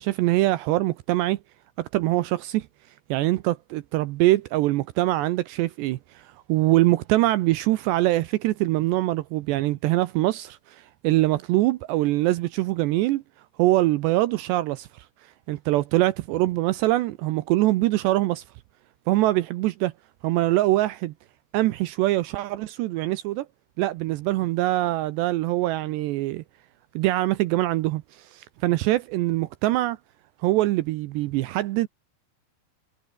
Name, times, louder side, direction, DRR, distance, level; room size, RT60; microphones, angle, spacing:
voice 1, 0.0-1.4 1.8-2.7 3.1-13.2 13.6-15.1 15.5-18.4 19.1-19.9 20.2-21.1 21.5-23.5 23.8-26.4 27.0-30.0 30.4-31.9, right 17 dB, 80° right, 2.5 m, -23 dB
omnidirectional pair, 5.9 m